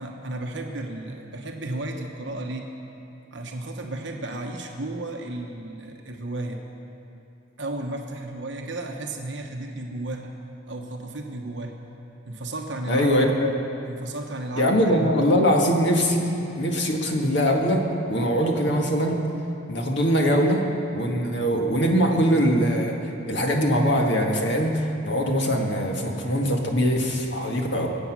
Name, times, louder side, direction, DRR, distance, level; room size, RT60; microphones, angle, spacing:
voice 1, 0.0-2.7 3.3-6.6 7.6-10.3 10.7-11.8 12.3-13.3 13.9-15.4, right 2 dB, 60° right, 2 dB, 1.1 m, -33 dB
voice 2, 12.9-13.5 14.6-19.2 19.7-20.6 20.9-27.9, equal, 60° left, 1 dB, 1.8 m, -22 dB
24.0 x 8.3 x 6.2 m, 2.8 s
head